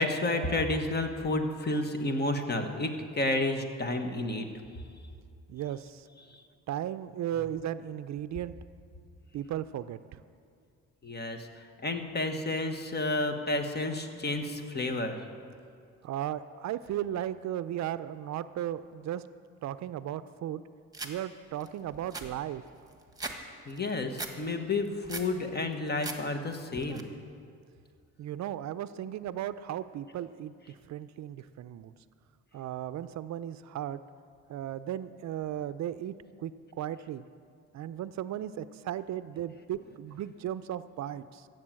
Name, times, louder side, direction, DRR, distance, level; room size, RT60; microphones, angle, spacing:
voice 1, 0.0-4.5 6.3-6.4 11.0-15.2 23.7-27.1, left 2 dB, 35° left, 6 dB, 1.4 m, -31 dB
voice 2, 5.5-6.1 6.7-8.6 9.3-10.2 16.0-19.2 19.6-20.6 21.0-22.6 28.2-31.9 32.5-34.0 34.5-37.2 37.7-41.5, right 11 dB, 65° right, 14 dB, 0.5 m, -36 dB
sound 1, 20.9-21.1 21.6-21.7 21.9-23.4 23.7-24.3 24.7-25.3 25.7-26.2 26.5-27.0, right 3 dB, 10° right, 1.5 m, -39 dB
15.5 x 7.9 x 7.6 m, 2.3 s
cardioid pair, 90°, 30 cm